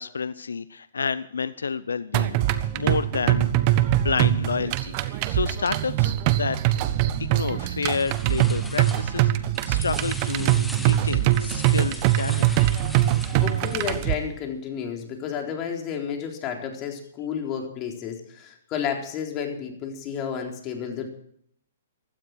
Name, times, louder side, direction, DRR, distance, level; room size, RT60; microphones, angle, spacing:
voice 1, 0.0-6.6 7.2-12.5, left 5 dB, 80° left, 16 dB, 0.7 m, -30 dB
sound 1, 2.1-14.1, right 14 dB, 40° right, 1.2 m, -23 dB
sound 2, 7.8-9.3 9.5-14.2, left 2 dB, 5° left, 1.6 m, -41 dB
voice 2, 13.4-21.1, left 7 dB, 30° left, 3 dB, 4.0 m, -31 dB
16.0 x 12.5 x 6.2 m, 0.68 s
hypercardioid pair, 125°, 0 cm